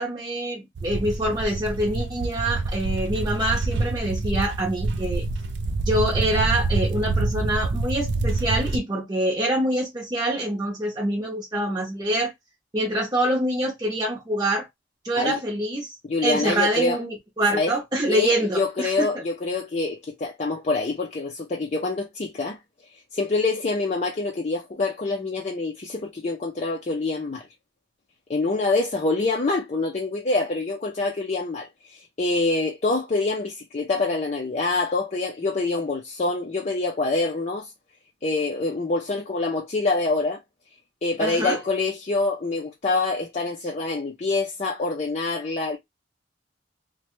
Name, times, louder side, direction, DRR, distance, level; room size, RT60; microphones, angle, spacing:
voice 1, 0.0-5.2 5.9-12.3 12.7-14.7 15.0-19.1 41.2-41.6, right 1 dB, 25° right, 0.8 m, -25 dB
sound 1, 0.8-8.8, right 3 dB, 70° right, 0.5 m, -26 dB
voice 2, 16.1-17.0 17.5-17.7 18.1-22.6 23.1-27.5 28.3-37.7 38.2-40.4 41.0-45.8, left 3 dB, 35° left, 0.4 m, -26 dB
3.1 x 2.2 x 2.9 m
head